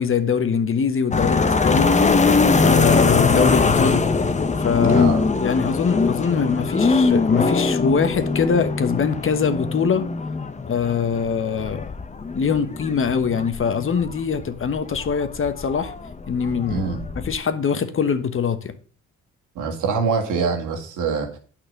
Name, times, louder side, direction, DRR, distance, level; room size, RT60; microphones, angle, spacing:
voice 1, 0.0-1.9 2.6-4.1 4.6-5.1 5.4-10.1 10.7-11.9 12.3-15.9 16.3-16.8 17.2-18.7, left 6 dB, 45° left, 1.3 m, -22 dB
sound 1, 1.1-17.4, left 4 dB, 25° left, 1.0 m, -22 dB
voice 2, 4.9-5.3 16.7-17.0 19.5-21.4, right 5 dB, 85° right, 2.5 m, -24 dB
9.0 x 5.9 x 6.7 m
cardioid pair, 90°, 30 cm